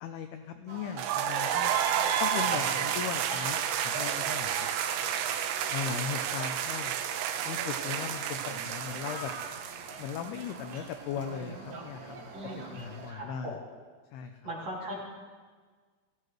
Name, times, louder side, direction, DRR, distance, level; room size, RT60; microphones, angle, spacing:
voice 1, 0.0-1.7 2.2-4.7 5.7-7.0 7.5-9.3 10.0-12.2 12.7-13.5 14.1-14.3, left 8 dB, 85° left, 7 dB, 2.2 m, -38 dB
sound 1, 0.7-13.1, right 3 dB, 65° right, 1.5 m, -46 dB
sound 2, 1.0-10.8, right 9 dB, 85° right, 2.9 m, -31 dB
voice 2, 2.2-2.6 12.3-12.8 13.1-13.8 14.4-15.0, equal, 40° right, -6 dB, 3.3 m, -40 dB
18.0 x 15.5 x 3.1 m, 1.5 s
omnidirectional pair, 5.2 m